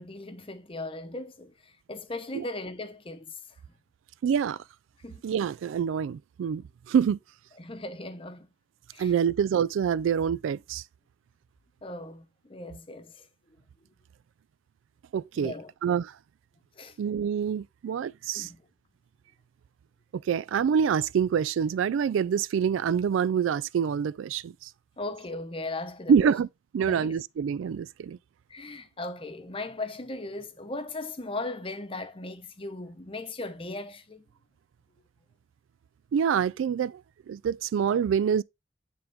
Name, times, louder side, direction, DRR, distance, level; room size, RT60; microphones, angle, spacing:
voice 1, 0.0-3.3 5.0-5.2 7.6-8.5 8.9-9.1 11.8-13.3 15.4-15.7 16.8-17.0 18.3-18.6 25.0-26.3 26.8-27.1 28.5-34.2, left 2 dB, 30° left, 0.8 m, -38 dB
voice 2, 4.2-4.6 5.2-7.2 9.0-10.8 15.1-15.5 15.8-16.1 17.0-18.5 20.3-24.7 26.1-26.5 26.7-28.2 36.1-37.0 37.3-38.4, right 7 dB, 85° right, 0.3 m, -26 dB
9.6 x 3.7 x 3.5 m
head